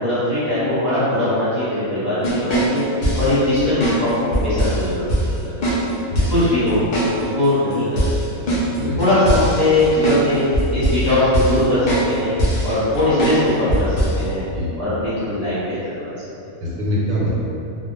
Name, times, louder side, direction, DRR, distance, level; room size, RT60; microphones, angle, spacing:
voice 1, 0.0-2.8 3.2-5.0 5.4-5.9 6.3-6.8 7.1-8.4 9.0-10.4 10.7-12.3 12.6-14.4 14.8-16.1 16.4-16.5, left 1 dB, 35° left, -14 dB, 0.8 m, -20 dB
sound 1, 2.2-3.3 3.8-4.0 4.3-4.8 5.1-5.2 5.6-5.8 6.2-6.4 6.9-7.1 7.4-7.5 8.0-10.2 10.5-11.0 11.3-11.6 11.9-12.1 12.4-12.7 13.2-13.4 13.7-14.2, right 1 dB, 70° left, 0.4 m, -20 dB
voice 2, 6.1-6.5 8.9-9.0 14.3-14.7 16.6-17.3, left 1 dB, 75° right, -6 dB, 1.0 m, -24 dB
2.2 x 2.0 x 3.0 m, 2.7 s
omnidirectional pair, 1.5 m